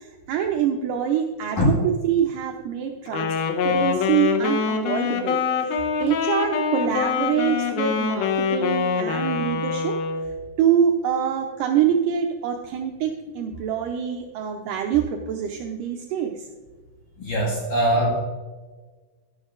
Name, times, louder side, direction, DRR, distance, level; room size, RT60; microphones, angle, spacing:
voice 1, 0.0-3.4 3.6-10.0 10.6-16.5, right 8 dB, 85° right, 2 dB, 1.9 m, -25 dB
Wind instrument woodwind instrument, 3.1-10.3, left 5 dB, 75° left, 2.6 m, -24 dB
voice 2, 17.2-18.1, equal, 55° left, -4 dB, 3.3 m, -21 dB
12.5 x 11.5 x 2.5 m, 1.4 s
omnidirectional pair, 4.6 m